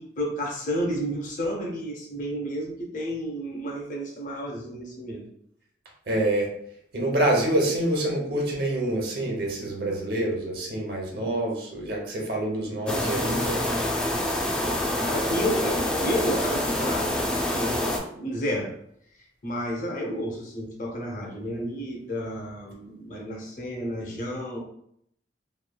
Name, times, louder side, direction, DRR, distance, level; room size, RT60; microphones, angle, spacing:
voice 1, 0.0-5.3 15.1-18.7 19.4-24.6, equal, 45° left, -1 dB, 0.6 m, -31 dB
voice 2, 6.1-6.5 6.9-13.6, right 1 dB, 60° right, -1 dB, 0.8 m, -26 dB
sound 1, 12.9-18.0, left 1 dB, 5° left, 0.3 m, -26 dB
3.0 x 2.2 x 2.2 m, 0.70 s
head